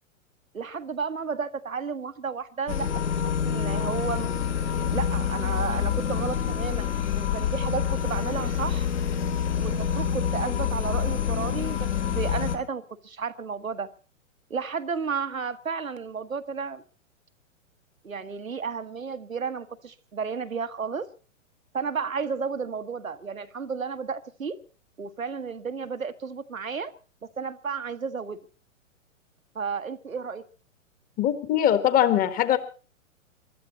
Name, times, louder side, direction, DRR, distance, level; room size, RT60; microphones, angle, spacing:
voice 1, 0.5-4.4 4.9-8.9 9.5-11.9 12.1-13.9 14.5-16.8 18.0-21.1 21.7-24.6 25.0-26.9 27.4-28.4 29.5-30.4, right 5 dB, 80° right, 10 dB, 1.4 m, -32 dB
sound 1, 2.7-12.6, left 8 dB, 60° left, 2.6 m, -27 dB
voice 2, 31.2-32.6, left 11 dB, 20° left, 12 dB, 1.6 m, -21 dB
23.0 x 13.0 x 4.1 m, 0.37 s
figure-of-eight pair, 110°, 40 cm